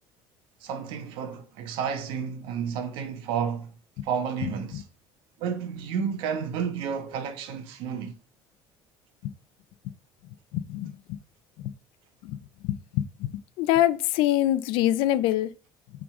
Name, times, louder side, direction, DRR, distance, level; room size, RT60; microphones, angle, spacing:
voice 1, 0.6-3.7 4.0-4.8 5.4-8.1, right 7 dB, 85° right, 1.2 m, -31 dB
voice 2, 10.5-11.2 11.6-11.7 12.2-12.4 12.6-13.3 13.6-15.5, left 13 dB, 90° left, 0.5 m, -25 dB
6.0 x 3.9 x 4.9 m
cardioid pair, 175°, 9 cm